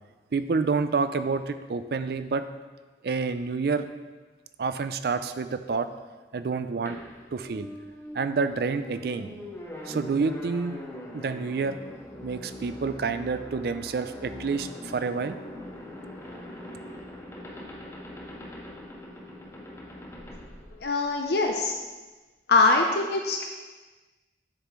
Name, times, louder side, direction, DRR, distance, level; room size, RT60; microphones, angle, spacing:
voice 1, 0.3-2.4 3.0-3.9 4.6-5.9 6.3-7.0 7.3-7.7 8.1-9.3 9.9-10.7 11.1-11.8 12.2-15.4, right 4 dB, 60° right, 11 dB, 0.4 m, -28 dB
sound 1, 6.9-21.4, left 1 dB, 15° left, 0.6 m, -42 dB
voice 2, 20.7-21.7 22.5-23.5, left 3 dB, 65° left, 2 dB, 0.6 m, -23 dB
7.5 x 6.8 x 3.1 m, 1.3 s
head